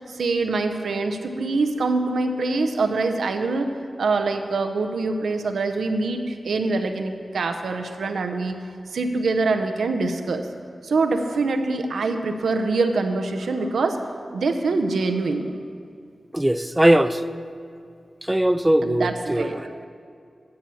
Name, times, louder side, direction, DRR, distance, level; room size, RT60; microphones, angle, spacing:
voice 1, 0.1-3.7 4.0-8.6 8.9-10.5 10.8-15.5 18.8-19.8, right 3 dB, 90° right, 6 dB, 0.7 m, -24 dB
voice 2, 16.3-17.2 18.3-19.7, right 1 dB, 15° right, 11 dB, 0.4 m, -20 dB
10.5 x 7.1 x 7.0 m, 2.3 s
cardioid pair, 45°, 0 cm